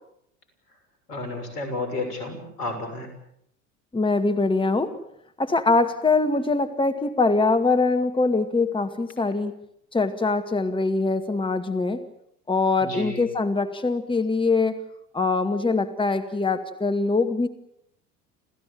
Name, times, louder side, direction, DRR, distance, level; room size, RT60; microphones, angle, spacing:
voice 1, 1.1-3.1 12.8-13.2, left 2 dB, 80° left, 7 dB, 6.8 m, -31 dB
voice 2, 3.9-4.9 5.4-9.5 9.9-12.0 12.5-14.8 15.1-17.5, left 3 dB, 10° left, 7 dB, 2.1 m, -23 dB
28.5 x 15.5 x 8.9 m, 0.73 s
hypercardioid pair, 75°, 46 cm